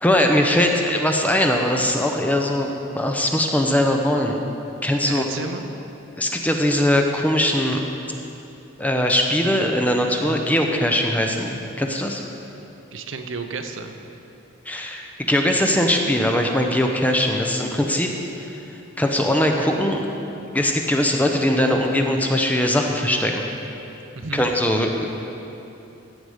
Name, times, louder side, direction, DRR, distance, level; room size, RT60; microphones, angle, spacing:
voice 1, 0.0-4.4 4.8-5.3 6.2-7.8 8.8-12.2 14.7-18.1 19.0-20.0 20.5-23.4 24.3-25.1, left 1 dB, 5° left, 2 dB, 0.7 m, -21 dB
voice 2, 5.0-5.7 12.9-14.0 24.1-24.5, right 4 dB, 65° right, 6 dB, 0.8 m, -32 dB
15.0 x 7.8 x 5.0 m, 2.9 s
head